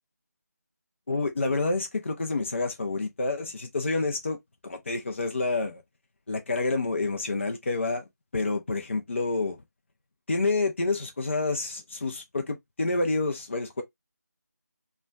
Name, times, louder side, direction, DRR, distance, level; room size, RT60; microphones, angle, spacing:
voice 1, 1.1-4.4 4.6-5.8 6.3-8.1 8.3-9.6 10.3-13.8, left 3 dB, 40° left, 0.5 m, -28 dB
2.4 x 2.2 x 2.9 m
figure-of-eight pair, 170°, 10 cm